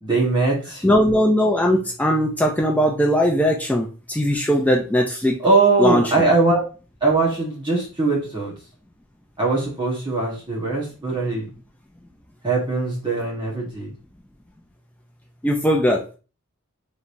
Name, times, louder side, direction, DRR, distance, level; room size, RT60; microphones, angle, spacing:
voice 1, 0.0-0.8 5.4-6.6 7.0-8.5 9.4-11.5 12.4-13.9, right 3 dB, 20° right, -5 dB, 1.3 m, -21 dB
voice 2, 0.8-5.4 5.8-6.0 15.4-16.2, equal, 5° left, 0 dB, 0.4 m, -19 dB
5.0 x 3.2 x 2.6 m, 0.35 s
head